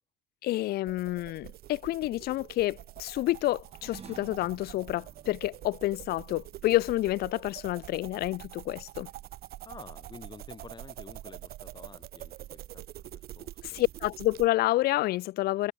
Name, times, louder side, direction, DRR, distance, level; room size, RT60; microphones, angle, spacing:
voice 1, 0.4-9.1 13.7-15.7, left 16 dB, 65° left, 0.5 m, -29 dB
sound 1, 0.9-14.5, right 13 dB, 70° right, 1.8 m, -46 dB
sound 2, 3.7-8.4, right 7 dB, 35° right, 2.3 m, -54 dB
voice 2, 9.6-13.8, left 4 dB, 25° left, 3.7 m, -50 dB
cardioid pair, 110°, 17 cm